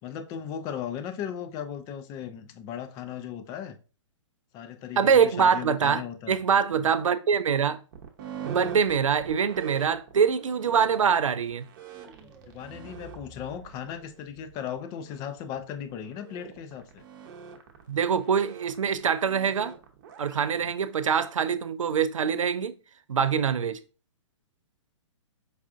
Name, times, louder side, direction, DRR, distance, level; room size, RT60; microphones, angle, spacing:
voice 1, 0.0-3.8 4.5-6.4 6.7-6.9 12.5-17.0 20.6-20.7, left 9 dB, 20° left, 0.4 m, -37 dB
voice 2, 5.0-6.0 6.3-7.8 8.4-11.6 17.9-19.7 20.2-22.7 23.1-23.8, right 7 dB, 85° right, 0.4 m, -24 dB
sound 1, 7.9-20.4, right 6 dB, 40° right, 0.8 m, -42 dB
sound 2, 11.8-14.8, right 3 dB, 10° right, 0.7 m, -52 dB
4.7 x 2.4 x 2.4 m
hypercardioid pair, 130°, 16 cm